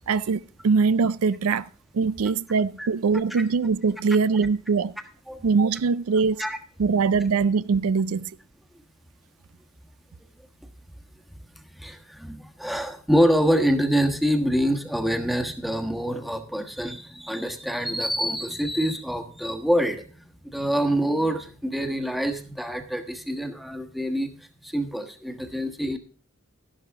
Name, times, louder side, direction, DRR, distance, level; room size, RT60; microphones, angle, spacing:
voice 1, 0.1-1.7 1.9-4.9 5.4-6.4 6.8-8.3, right 5 dB, 75° right, 0.4 m, -22 dB
voice 2, 11.8-24.3 24.6-26.0, equal, ahead, 1.3 m, -26 dB
12.5 x 11.5 x 3.5 m
head